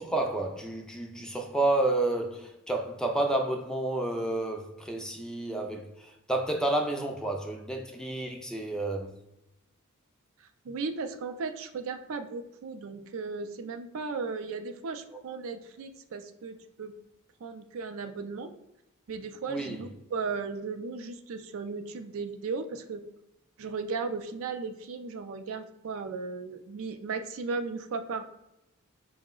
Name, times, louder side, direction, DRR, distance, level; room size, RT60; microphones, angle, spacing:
voice 1, 0.0-9.2 19.5-19.9, right 2 dB, 5° left, 0.3 m, -30 dB
voice 2, 10.4-16.9 17.4-18.5 19.1-23.0 23.6-28.2, right 4 dB, 65° right, 0.4 m, -36 dB
4.8 x 2.0 x 3.6 m
head